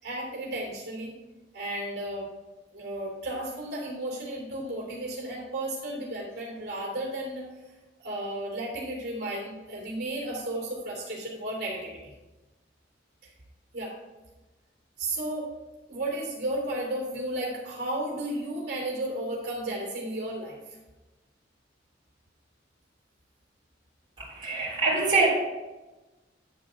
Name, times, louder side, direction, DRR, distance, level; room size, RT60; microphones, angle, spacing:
voice 1, 0.0-1.2 1.5-2.3 2.7-7.4 8.0-12.1 13.2-13.3 13.7-14.0 15.0-15.5 15.9-20.8, right 1 dB, 60° right, -3 dB, 2.9 m, -33 dB
voice 2, 24.2-25.3, right 3 dB, 25° right, -9 dB, 3.2 m, -24 dB
10.5 x 3.9 x 5.6 m, 1.1 s
head